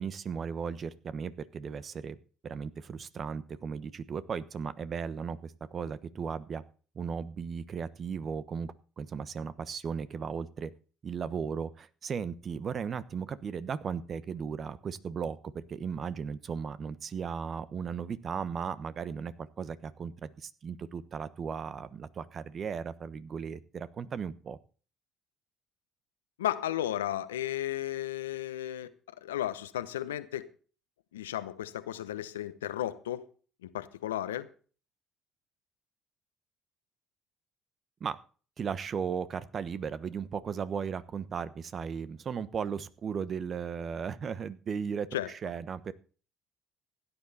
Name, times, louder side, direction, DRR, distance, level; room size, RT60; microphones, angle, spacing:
voice 1, 0.0-2.2 2.4-6.6 6.9-10.7 11.0-24.6 38.0-38.2 38.6-45.9, right 6 dB, 45° right, 1.1 m, -36 dB
voice 2, 26.4-30.5 31.1-33.3 33.6-34.5 45.1-45.3, left 12 dB, 90° left, 0.9 m, -34 dB
16.5 x 10.0 x 4.2 m
hypercardioid pair, 60°, 0 cm